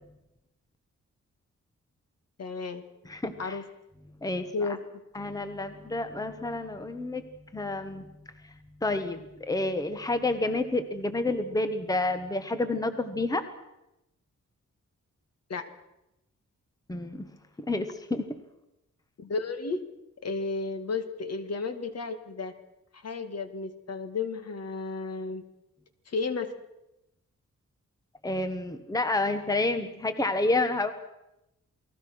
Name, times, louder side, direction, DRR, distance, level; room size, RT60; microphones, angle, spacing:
voice 1, 2.4-2.8 3.4-3.7 4.5-4.8 15.5-15.7 19.2-19.8 20.2-22.5 22.9-25.4 26.1-26.5, left 4 dB, 55° left, 9 dB, 2.1 m, -33 dB
voice 2, 3.0-3.6 4.2-4.5 5.1-7.2 7.5-8.0 8.8-13.4 16.9-17.3 17.7-18.3 28.2-30.9, left 2 dB, 10° left, 9 dB, 1.3 m, -29 dB
29.0 x 20.0 x 6.3 m, 0.89 s
wide cardioid pair, 165°, 30 cm